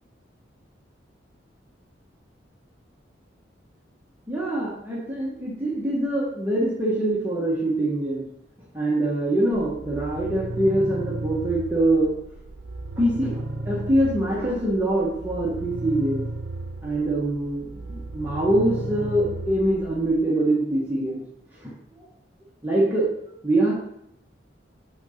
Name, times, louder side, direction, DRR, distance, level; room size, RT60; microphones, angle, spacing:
voice 1, 4.3-8.2 8.7-12.1 13.0-16.2 16.8-21.2 21.6-21.7 22.6-23.1 23.4-23.7, right 1 dB, 10° right, -6 dB, 1.2 m, -24 dB
sound 1, 9.5-20.2, right 2 dB, 90° right, 0.8 m, -35 dB
6.3 x 4.0 x 5.0 m, 0.76 s
head